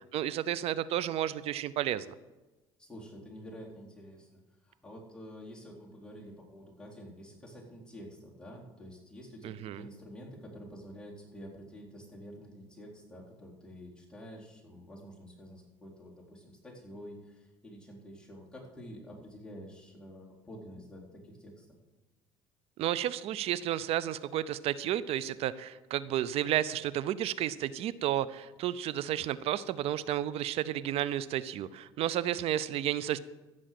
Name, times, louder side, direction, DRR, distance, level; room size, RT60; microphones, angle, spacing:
voice 1, 0.1-2.1 9.4-9.8 22.8-33.2, right 12 dB, 60° right, 17 dB, 0.6 m, -32 dB
voice 2, 2.8-4.4 4.6-21.8, equal, 5° left, -4 dB, 4.0 m, -48 dB
15.0 x 6.2 x 7.7 m, 1.1 s
supercardioid pair, 105°, 12 cm